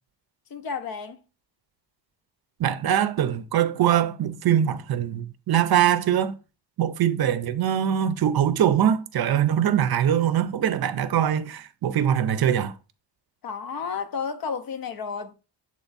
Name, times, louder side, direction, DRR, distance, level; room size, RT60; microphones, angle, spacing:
voice 1, 0.5-1.2 13.4-15.3, left 5 dB, 55° left, 0.6 m, -32 dB
voice 2, 2.6-6.3 6.8-12.7, right 10 dB, 60° right, 0.5 m, -22 dB
7.4 x 3.5 x 4.0 m
wide cardioid pair, 175°, 44 cm